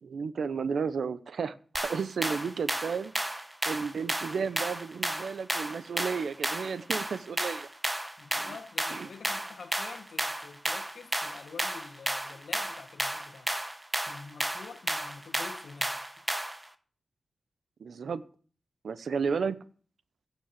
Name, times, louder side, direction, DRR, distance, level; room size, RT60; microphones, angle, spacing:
voice 1, 0.0-3.1 3.7-7.7 8.4-8.5 8.9-9.1 17.8-18.2 18.8-19.6, right 5 dB, 75° right, 0.8 m, -33 dB
sound 1, 1.8-16.7, right 1 dB, 10° right, 1.1 m, -33 dB
voice 2, 8.2-13.5 13.9-16.3, left 5 dB, 75° left, 1.5 m, -47 dB
16.5 x 6.1 x 7.6 m
wide cardioid pair, 125°, 0 cm